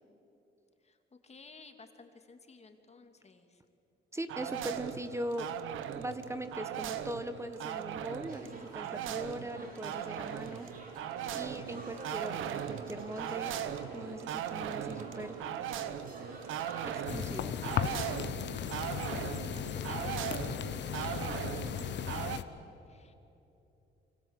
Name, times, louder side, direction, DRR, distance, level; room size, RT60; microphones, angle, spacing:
voice 1, 0.8-3.6 18.1-20.7 20.9-22.2 22.9-23.1, left 4 dB, 35° left, 6 dB, 2.6 m, -55 dB
voice 2, 4.1-5.5 5.9-10.7 11.3-13.6 13.9-15.4 16.9-17.6, right 1 dB, 15° right, 10 dB, 1.5 m, -40 dB
sound 1, 4.3-22.4, right 9 dB, 90° right, 1.4 m, -39 dB
sound 2, 8.3-17.0, right 2 dB, 45° right, 5.5 m, -49 dB
sound 3, 17.1-22.4, left 10 dB, 65° left, 1.1 m, -36 dB
29.5 x 24.5 x 8.2 m, 2.9 s
cardioid pair, 90°, 20 cm